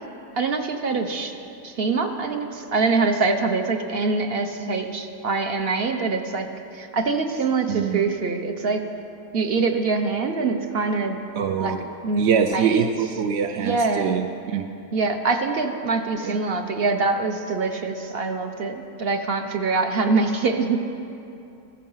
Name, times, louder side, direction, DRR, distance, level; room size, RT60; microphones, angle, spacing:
voice 1, 0.4-1.4 1.6-6.5 6.7-8.9 9.3-11.2 11.6-12.3 12.5-12.9 13.5-14.2 14.9-20.8, right 4 dB, 45° right, 6 dB, 1.0 m, -24 dB
voice 2, 7.7-8.0 11.3-11.8 12.2-14.7 16.2-16.4, right 7 dB, 60° right, 6 dB, 0.7 m, -24 dB
15.5 x 14.0 x 5.6 m, 2.7 s
omnidirectional pair, 1.6 m